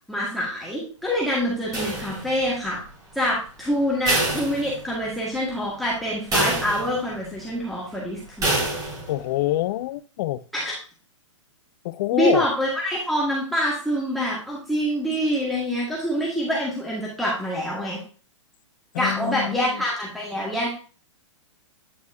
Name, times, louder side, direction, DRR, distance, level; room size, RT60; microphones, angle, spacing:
voice 1, 0.1-2.8 3.2-8.6 10.5-10.7 12.1-18.0 19.0-20.7, equal, ahead, 1.8 m, -26 dB
sound 1, 1.7-2.6 4.1-5.2 5.6-5.7 6.3-7.2 8.4-9.2, right 1 dB, 20° right, 3.1 m, -26 dB
voice 2, 9.1-10.4 11.8-12.4 18.9-19.8, left 16 dB, 40° left, 0.4 m, -26 dB
9.4 x 6.0 x 2.7 m
hypercardioid pair, 115°, 16 cm